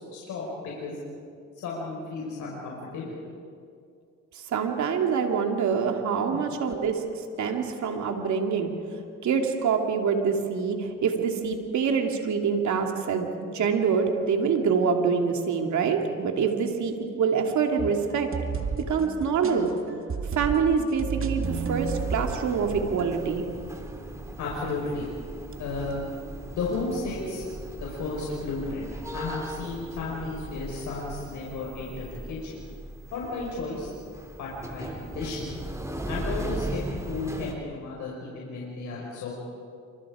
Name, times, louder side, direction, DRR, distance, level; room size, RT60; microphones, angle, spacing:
voice 1, 0.1-1.0 1.6-3.2 6.3-6.4 24.4-25.1 25.6-26.0 26.5-27.4 27.8-32.6 33.1-33.9 34.4-35.6 36.1-39.3, left 3 dB, 80° left, -4 dB, 5.3 m, -33 dB
voice 2, 4.3-7.0 7.4-8.7 9.2-18.3 18.9-19.7 20.3-23.4, right 6 dB, 70° right, 3 dB, 2.8 m, -25 dB
sound 1, 17.8-23.2, right 5 dB, 45° right, 2.2 m, -33 dB
sound 2, 21.4-37.6, right 1 dB, 10° right, 3.1 m, -38 dB
28.5 x 25.5 x 5.0 m, 2.3 s
cardioid pair, 90°, 30 cm